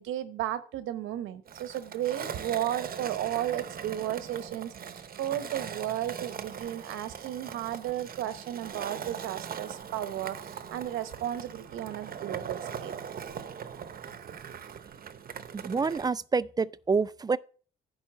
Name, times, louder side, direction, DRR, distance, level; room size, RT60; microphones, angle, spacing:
voice 1, 0.0-12.9 13.3-13.4, right 12 dB, 90° right, 1.0 m, -34 dB
Skateboard, 1.5-16.1, right 7 dB, 50° right, 0.8 m, -40 dB
voice 2, 15.5-17.4, right 4 dB, 20° right, 0.3 m, -27 dB
10.5 x 4.2 x 7.3 m
cardioid pair, 90°, 20 cm